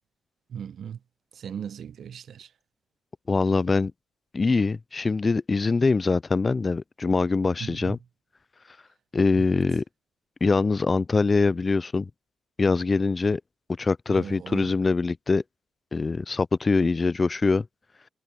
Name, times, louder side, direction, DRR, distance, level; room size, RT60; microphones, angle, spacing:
voice 1, 0.5-1.0 1.3-2.5 7.6-8.0 9.4-9.6 14.1-14.7, right 8 dB, 60° right, 0.8 m, -38 dB
voice 2, 3.3-3.9 4.3-8.0 9.1-9.8 10.4-12.1 12.6-13.4 13.8-15.4 15.9-17.7, left 4 dB, 30° left, 0.3 m, -23 dB
cardioid pair, 90°, 0 cm